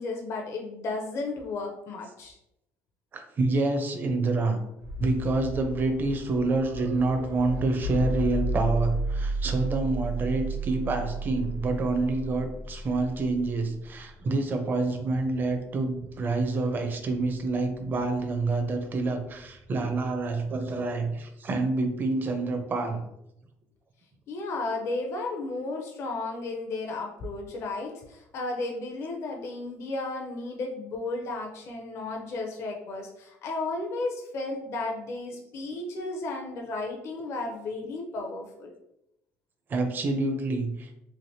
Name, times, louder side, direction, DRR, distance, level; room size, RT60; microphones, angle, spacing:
voice 1, 0.0-2.4 24.3-38.7, left 2 dB, 55° left, 1 dB, 0.5 m, -34 dB
voice 2, 3.1-4.6 5.0-23.0 39.7-40.9, right 3 dB, 35° right, 6 dB, 0.5 m, -27 dB
sound 1, 4.8-20.7, right 2 dB, 75° right, 1.0 m, -35 dB
3.3 x 2.5 x 2.7 m, 0.84 s
cardioid pair, 115°, 6 cm